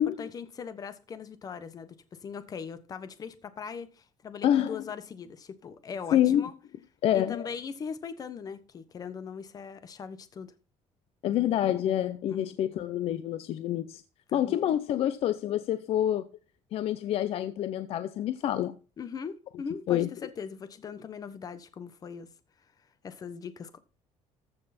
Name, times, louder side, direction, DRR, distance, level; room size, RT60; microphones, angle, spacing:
voice 1, 0.0-6.5 7.1-10.5 12.3-12.5 14.3-14.6 19.0-22.3 23.0-23.8, left 6 dB, 30° left, 1.1 m, -40 dB
voice 2, 4.4-4.8 6.1-6.5 7.0-7.5 11.2-14.0 14.3-16.3 16.7-18.8 19.9-20.1, left 11 dB, 50° left, 0.6 m, -27 dB
14.5 x 6.5 x 4.3 m
cardioid pair, 170°, 12 cm